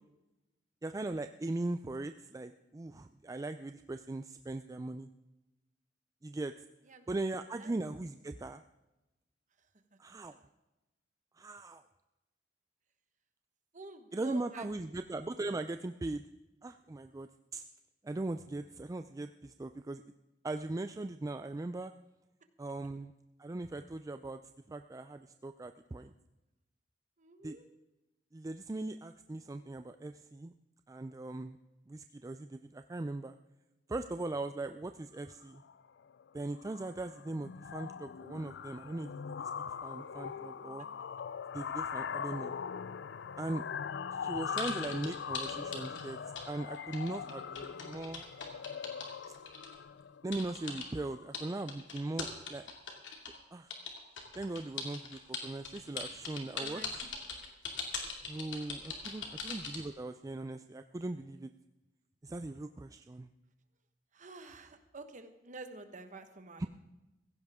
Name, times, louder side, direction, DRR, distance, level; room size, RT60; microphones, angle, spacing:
voice 1, 0.8-5.1 6.2-6.5 7.1-8.6 10.0-10.4 11.4-11.8 14.1-16.2 16.6-17.6 18.0-20.0 20.4-21.9 22.6-23.1 23.4-24.4 24.7-26.1 27.4-27.6 28.3-30.5 30.9-31.6 31.9-33.4 33.9-35.6 36.3-40.9 41.5-42.6 43.4-43.6 44.1-46.2 46.5-48.3 50.2-52.7 53.5-53.7 54.4-56.8 58.3-61.5 62.2-63.3 66.6-66.7, right 2 dB, 20° right, 9 dB, 0.3 m, -39 dB
voice 2, 13.7-14.7 27.2-27.7 40.8-40.9 56.6-56.9 64.1-66.6, right 3 dB, 45° right, 8 dB, 1.2 m, -49 dB
sound 1, 35.4-35.7 36.0-36.3 36.6-51.4, left 7 dB, 70° left, 0.4 m, -41 dB
sound 2, 44.6-46.5 46.7-49.8 50.3-50.9 51.3-53.4 53.7-59.8, left 5 dB, 85° left, 2.4 m, -41 dB
16.0 x 15.5 x 3.6 m, 1.0 s
head